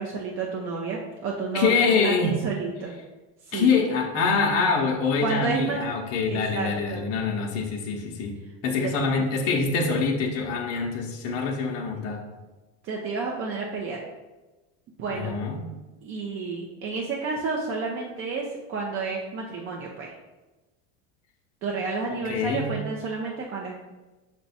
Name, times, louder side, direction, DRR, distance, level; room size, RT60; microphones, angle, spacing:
voice 1, 0.0-2.9 3.5-3.8 5.2-5.8 6.3-7.0 8.8-9.2 11.9-12.1 12.8-14.0 15.0-15.4 16.0-20.1 21.6-23.8, right 4 dB, 35° right, -1 dB, 0.5 m, -31 dB
voice 2, 1.5-2.4 3.5-12.3 15.1-15.7 22.1-22.8, left 4 dB, 40° left, 0 dB, 0.6 m, -25 dB
5.8 x 2.2 x 4.0 m, 1.1 s
supercardioid pair, 140°, 38 cm